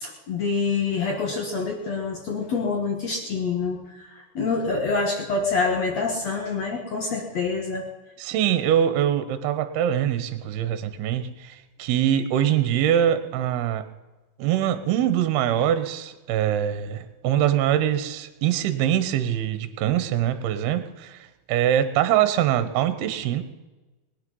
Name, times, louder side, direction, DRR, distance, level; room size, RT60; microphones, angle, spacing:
voice 1, 0.0-3.8 4.3-7.8, left 4 dB, 70° left, 1 dB, 1.6 m, -26 dB
voice 2, 8.2-13.9 14.4-23.4, right 10 dB, 70° right, 11 dB, 2.7 m, -23 dB
21.0 x 10.0 x 5.4 m, 1.2 s
omnidirectional pair, 5.1 m